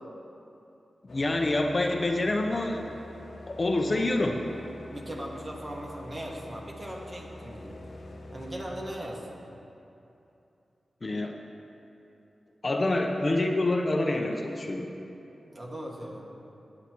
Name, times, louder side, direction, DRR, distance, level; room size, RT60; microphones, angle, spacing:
voice 1, 1.0-2.9 3.5-4.4 11.0-11.4 12.6-14.9, left 2 dB, 45° left, 2 dB, 0.8 m, -27 dB
sound 1, 1.1-8.9, left 2 dB, 70° left, 1.1 m, -46 dB
voice 2, 4.9-7.8 8.3-9.4 15.4-16.3, right 1 dB, 40° right, -2 dB, 1.9 m, -39 dB
16.5 x 8.8 x 3.1 m, 2.8 s
cardioid pair, 50°, 0 cm